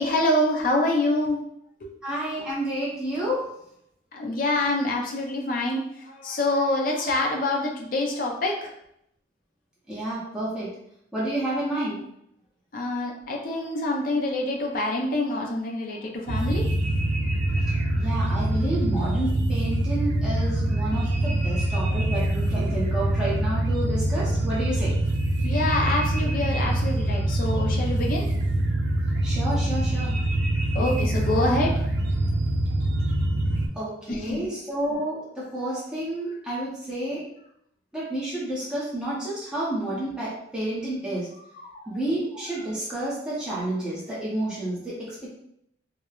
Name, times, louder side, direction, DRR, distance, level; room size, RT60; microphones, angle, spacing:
voice 1, 0.0-1.4 1.8-2.0 4.1-8.7 12.7-16.7 25.4-28.3 30.7-31.8 34.1-34.4 41.6-41.9, left 1 dB, 45° left, 0 dB, 0.4 m, -26 dB
voice 2, 2.0-3.5 9.9-10.7 11.1-12.0 18.0-24.9 29.2-30.1 33.7-37.3 37.9-41.3 41.9-45.3, right 1 dB, 5° right, -8 dB, 0.6 m, -30 dB
sound 1, 16.3-33.7, right 1 dB, 75° right, 0.4 m, -24 dB
2.9 x 2.0 x 2.3 m, 0.75 s
head